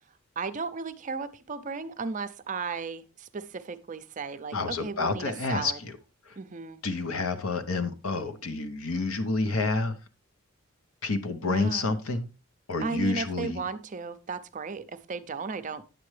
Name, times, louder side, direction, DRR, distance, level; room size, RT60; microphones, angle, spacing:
voice 1, 0.4-5.8 6.4-6.8 11.4-11.9 12.8-15.8, right 4 dB, 35° right, 0.5 m, -35 dB
voice 2, 4.5-5.9 6.3-6.4 6.8-10.0 11.0-12.3 12.7-13.6, left 3 dB, 75° left, 0.9 m, -29 dB
9.3 x 7.5 x 3.2 m
head